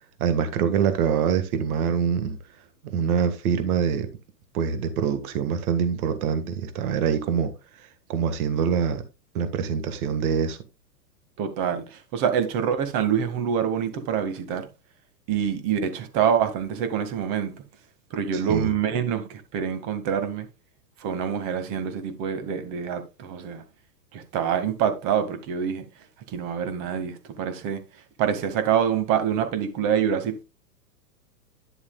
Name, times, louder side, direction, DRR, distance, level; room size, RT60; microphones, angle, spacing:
voice 1, 0.2-2.4 2.8-4.1 4.5-7.5 8.1-9.0 9.4-10.6 18.3-18.7, right 7 dB, 60° right, 1.7 m, -24 dB
voice 2, 11.4-14.7 15.3-17.5 18.1-20.5 21.0-23.6 24.1-25.8 26.3-27.8 28.2-30.4, right 8 dB, 40° right, 2.0 m, -26 dB
11.0 x 7.1 x 2.3 m
hypercardioid pair, 110°, 49 cm